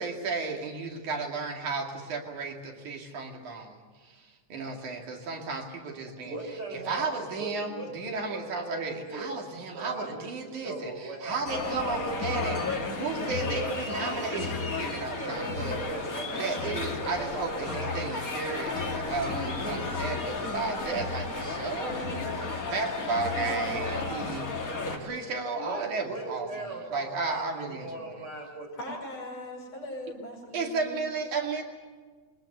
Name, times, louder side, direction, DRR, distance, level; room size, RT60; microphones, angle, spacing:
voice 1, 0.0-3.8 4.0-4.2 4.5-6.4 6.7-15.8 16.4-24.5 24.9-28.2 30.5-31.6, right 4 dB, 80° right, 2 dB, 3.8 m, -34 dB
voice 2, 6.2-9.4 9.7-11.4 13.5-14.5 15.2-17.9 25.3-29.0, right 2 dB, 35° right, 1 dB, 5.2 m, -39 dB
sound 1, 11.5-25.0, left 3 dB, 30° left, 2.2 m, -33 dB
voice 3, 28.8-31.0, left 1 dB, 55° left, 0 dB, 6.3 m, -40 dB
22.5 x 20.0 x 8.0 m, 1.4 s
omnidirectional pair, 3.4 m